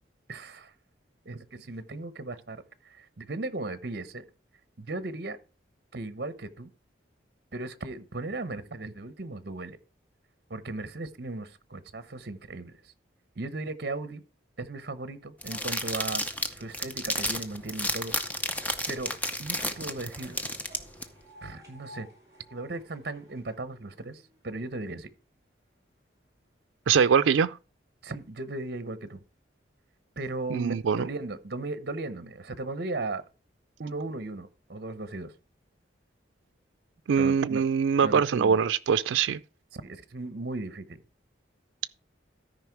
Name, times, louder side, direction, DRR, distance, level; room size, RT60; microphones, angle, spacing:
voice 1, 0.3-0.7 1.2-4.2 4.8-5.4 5.9-6.7 7.5-9.8 10.5-12.9 13.4-14.2 14.6-18.2 18.5-19.1 19.4-20.4 21.4-22.1 22.5-25.1 28.0-29.2 30.2-33.2 33.8-35.3 37.2-37.6 38.0-38.6 39.7-41.0, right 2 dB, 55° right, 0.9 m, -37 dB
sound 1, 15.4-21.0, left 1 dB, 10° left, 0.7 m, -32 dB
sound 2, 17.2-25.4 25.8-26.7 27.4-27.5 27.8-27.9 28.1-28.2 29.1-29.2 29.8-29.9 30.6-30.7 31.1-31.2, equal, 15° right, 4.7 m, -56 dB
voice 2, 26.9-27.5 30.5-31.1 37.1-39.4, right 6 dB, 90° right, 0.4 m, -23 dB
13.5 x 5.2 x 4.6 m
head